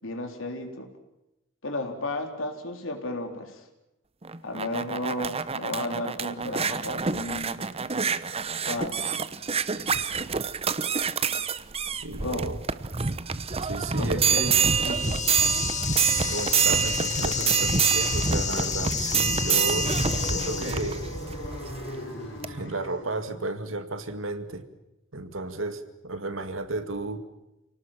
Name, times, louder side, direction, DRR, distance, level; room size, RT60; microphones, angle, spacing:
voice 1, 0.0-0.9 1.6-3.6 4.4-7.6 8.7-9.0 12.2-12.5 14.0-15.2, left 2 dB, 85° left, 5 dB, 3.9 m, -33 dB
sound 1, 4.2-21.9 22.4-22.5, right 6 dB, 30° right, 0.9 m, -27 dB
voice 2, 12.0-12.6 13.6-14.5 16.2-19.9 20.2-21.0 22.4-24.6 25.1-27.2, right 2 dB, 85° right, 9 dB, 2.2 m, -33 dB
sound 2, 14.5-21.2, left 8 dB, 40° left, 1.8 m, -32 dB
sound 3, 18.7-23.3, left 1 dB, 60° left, 5.2 m, -37 dB
28.0 x 19.0 x 7.5 m, 0.92 s
head